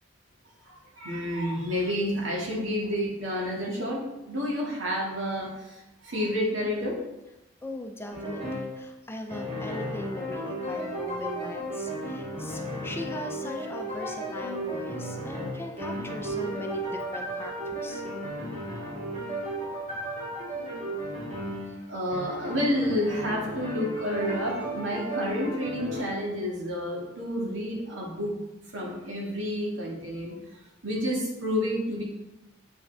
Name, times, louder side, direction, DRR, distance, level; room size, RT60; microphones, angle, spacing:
voice 1, 0.6-7.0 21.9-28.3 28.7-32.0, equal, 90° right, -3 dB, 2.1 m, -30 dB
voice 2, 7.6-18.0 21.7-21.8, left 1 dB, 10° left, 2 dB, 0.5 m, -39 dB
sound 1, 8.1-8.8 9.3-21.8 22.1-26.0, right 1 dB, 35° right, 2.4 m, -34 dB
7.9 x 5.3 x 3.4 m, 0.97 s
head